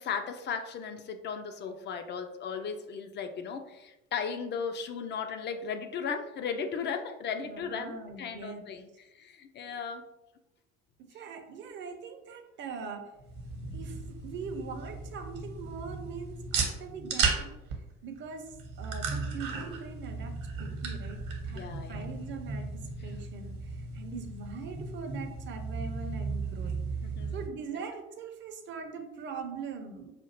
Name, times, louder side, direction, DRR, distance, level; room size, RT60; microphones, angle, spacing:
voice 1, 0.0-8.9 9.1-10.0 21.5-22.1 27.0-27.4, left 6 dB, 30° left, 7 dB, 0.4 m, -36 dB
voice 2, 7.4-8.6 11.1-13.1 13.7-26.7 27.3-30.1, right 5 dB, 30° right, 5 dB, 0.6 m, -42 dB
sound 1, 13.2-27.5, right 4 dB, 55° right, 1.1 m, -35 dB
5.0 x 2.5 x 2.8 m, 0.95 s
figure-of-eight pair, 65°, 40 cm